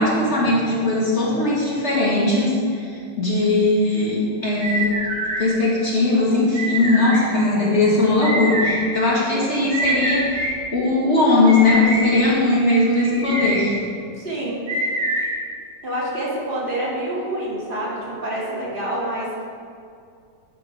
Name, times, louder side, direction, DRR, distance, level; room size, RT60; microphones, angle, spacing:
voice 1, 0.0-4.9 5.4-10.4 10.7-13.8, left 2 dB, 35° left, -5 dB, 2.2 m, -19 dB
sound 1, 4.6-5.4 6.5-7.2 8.2-8.7 9.7-10.5 11.5-12.0 13.0-13.6 14.7-15.2, right 1 dB, 50° right, 3.2 m, -24 dB
voice 2, 14.1-14.6 15.8-19.4, right 1 dB, 25° right, -6 dB, 2.7 m, -27 dB
11.5 x 5.8 x 4.9 m, 2.3 s
omnidirectional pair, 2.0 m